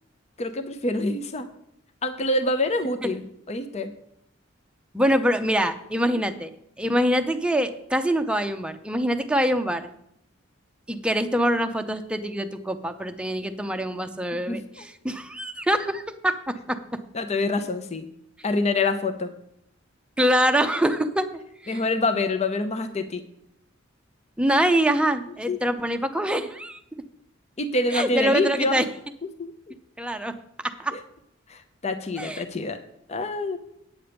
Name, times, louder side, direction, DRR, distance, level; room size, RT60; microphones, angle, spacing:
voice 1, 0.4-1.5 2.0-3.9 14.3-14.9 17.1-18.1 18.4-19.3 21.7-23.2 25.5-25.6 27.6-28.8 29.4-29.7 30.9-31.0 31.5-32.8 33.1-33.6, left 2 dB, 35° left, 8 dB, 0.6 m, -26 dB
voice 2, 4.9-6.5 6.8-9.9 10.9-16.8 20.2-21.3 21.6-21.8 24.4-26.8 27.9-28.9 30.0-30.3 30.6-30.9 32.2-32.4, equal, 5° right, 7 dB, 0.6 m, -24 dB
8.8 x 8.2 x 5.2 m, 0.74 s
head